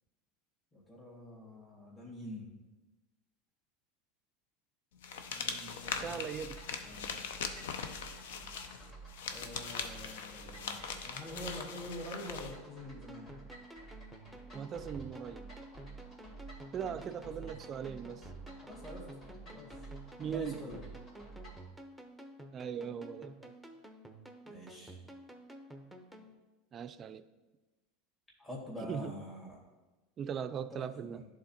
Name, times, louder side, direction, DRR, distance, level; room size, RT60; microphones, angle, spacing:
voice 1, 0.7-2.5 5.3-6.2 6.8-7.3 9.3-13.3 16.8-17.5 18.6-19.1 19.4-19.7 20.2-20.8 24.4-25.0 28.4-29.6 30.5-31.3, left 1 dB, 15° left, -5 dB, 1.9 m, -46 dB
sound 1, 5.0-12.5, left 6 dB, 80° left, 0.5 m, -41 dB
sound 2, 5.8-21.7, right 3 dB, 40° left, 2.2 m, -52 dB
voice 2, 5.9-6.6 14.5-15.5 16.7-18.3 20.2-20.7 22.5-23.5 26.7-27.2 28.8-29.2 30.2-31.2, right 8 dB, 35° right, 12 dB, 0.3 m, -39 dB
sound 3, 13.1-26.3, right 1 dB, ahead, 0.7 m, -52 dB
11.0 x 3.7 x 2.8 m, 1.1 s
supercardioid pair, 105°, 0 cm